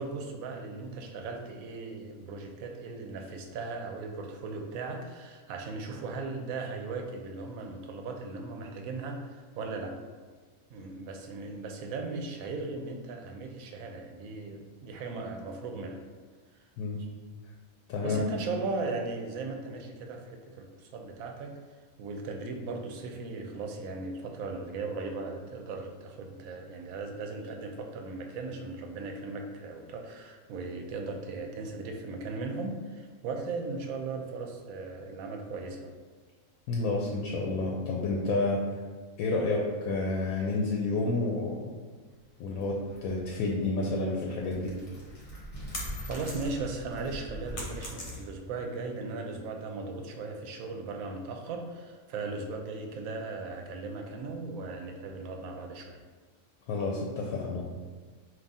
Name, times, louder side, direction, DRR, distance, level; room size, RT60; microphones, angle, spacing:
voice 1, 0.0-9.9 10.7-16.0 18.0-21.5 22.0-35.9 46.1-56.0, right 3 dB, 80° right, 3 dB, 1.0 m, -37 dB
voice 2, 36.7-38.6 39.2-41.7 42.4-44.7 56.7-57.6, left 3 dB, 85° left, -1 dB, 1.0 m, -30 dB
sound 1, 42.2-48.2, equal, 25° left, 1.1 m, -43 dB
sound 2, 45.3-46.8 47.1-48.6, left 2 dB, 60° left, 1.1 m, -41 dB
3.5 x 2.6 x 4.0 m, 1.5 s
omnidirectional pair, 1.4 m